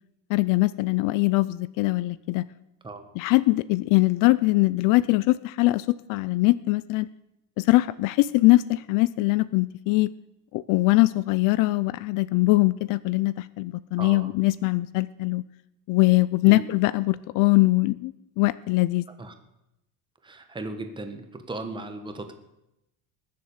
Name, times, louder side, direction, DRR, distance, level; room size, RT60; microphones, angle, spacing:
voice 1, 0.3-2.4 3.2-7.1 7.6-10.1 10.5-15.4 15.9-19.0, left 20 dB, 60° left, 18 dB, 0.5 m, -22 dB
voice 2, 14.0-14.3 16.4-16.7 19.2-19.3 20.2-22.3, right 2 dB, 10° right, 7 dB, 1.3 m, -36 dB
20.0 x 7.5 x 7.1 m, 0.89 s
cardioid pair, 160°, 38 cm